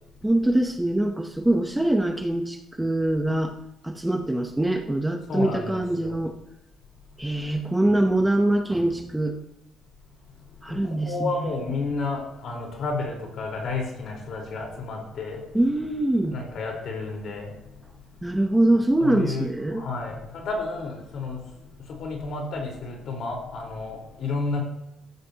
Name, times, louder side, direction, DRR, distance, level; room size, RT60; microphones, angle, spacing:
voice 1, 0.2-3.5 3.8-6.3 7.2-9.4 10.6-11.5 15.5-16.4 18.2-19.9, right 1 dB, 5° right, 4 dB, 0.7 m, -23 dB
voice 2, 5.3-6.2 10.7-15.4 16.3-17.5 19.0-19.5 19.7-21.4 21.9-24.6, left 3 dB, 55° left, 0 dB, 4.0 m, -31 dB
15.0 x 14.0 x 2.8 m, 0.89 s
cardioid pair, 160°, 0 cm